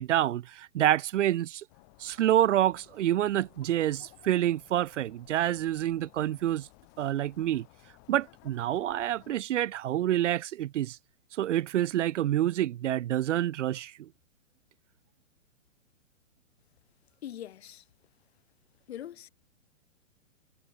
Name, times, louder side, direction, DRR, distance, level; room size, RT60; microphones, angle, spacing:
voice 1, 0.0-1.6 2.0-6.7 7.0-7.7 8.1-11.0 11.3-14.1, right 12 dB, 70° right, 0.5 m, -27 dB
sound 1, 1.7-9.3, left 40 dB or more, 25° left, 1.8 m, -58 dB
voice 2, 17.2-17.8 18.9-19.3, left 11 dB, 55° left, 3.1 m, -42 dB
hypercardioid pair, 160°, 38 cm